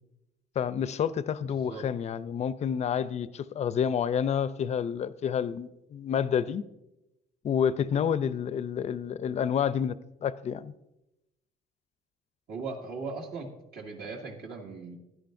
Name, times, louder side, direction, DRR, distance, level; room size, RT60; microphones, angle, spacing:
voice 1, 0.6-6.6 7.4-10.0 10.2-10.7, left 8 dB, 40° left, 15 dB, 0.5 m, -29 dB
voice 2, 1.4-1.9 12.5-15.0, right 4 dB, 70° right, 0 dB, 2.3 m, -39 dB
16.5 x 11.0 x 2.6 m, 0.93 s
cardioid pair, 110°, 17 cm